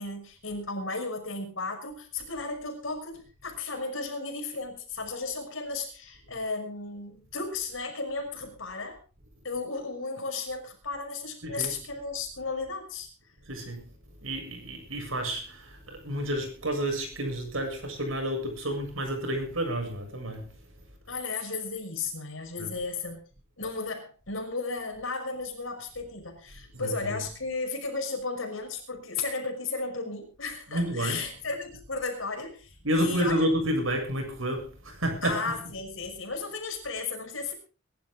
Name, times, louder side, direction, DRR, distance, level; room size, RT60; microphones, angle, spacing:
voice 1, 0.0-9.0 9.4-13.1 21.1-23.2 23.6-33.5 35.2-37.5, left 3 dB, 70° left, 5.8 m, -34 dB
voice 2, 11.4-11.7 13.4-13.9 14.2-20.6 22.6-22.7 26.7-27.2 30.7-31.3 32.8-35.5, equal, 75° right, 7.3 m, -30 dB
23.0 x 12.0 x 3.8 m
head